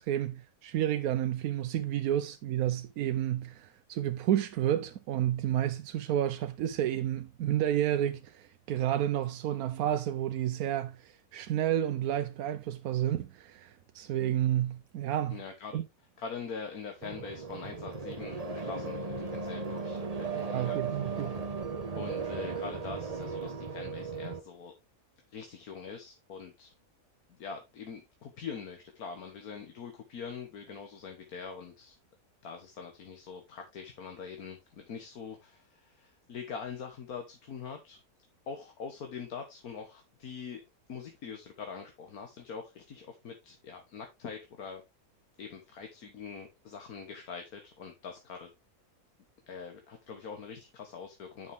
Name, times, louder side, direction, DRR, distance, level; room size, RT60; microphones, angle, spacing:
voice 1, 0.0-15.4 15.7-15.8 20.5-21.4, right 11 dB, 85° right, 1.1 m, -30 dB
voice 2, 15.3-15.8 16.2-21.5 22.0-24.7 25.3-26.7 27.4-32.0 32.4-38.0 38.5-40.6 40.9-44.8 45.4-48.5 49.5-51.5, left 6 dB, 85° left, 1.7 m, -43 dB
sound 1, 17.0-24.4, right 4 dB, 30° right, 1.0 m, -36 dB
9.5 x 6.0 x 3.4 m
omnidirectional pair, 1.5 m